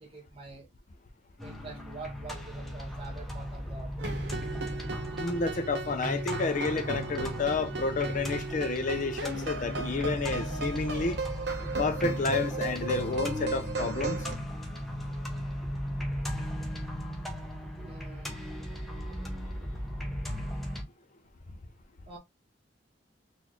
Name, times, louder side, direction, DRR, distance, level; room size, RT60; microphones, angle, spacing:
voice 1, 0.0-0.7 1.4-4.0 17.8-18.3 22.1-22.2, right 3 dB, 30° right, 1.0 m, -46 dB
sound 1, 1.4-20.8, equal, ahead, 0.7 m, -36 dB
sound 2, 4.0-14.3, right 4 dB, 70° right, 0.8 m, -36 dB
voice 2, 5.2-11.2 11.8-14.2, left 4 dB, 45° left, 0.5 m, -30 dB
3.9 x 2.6 x 2.9 m
head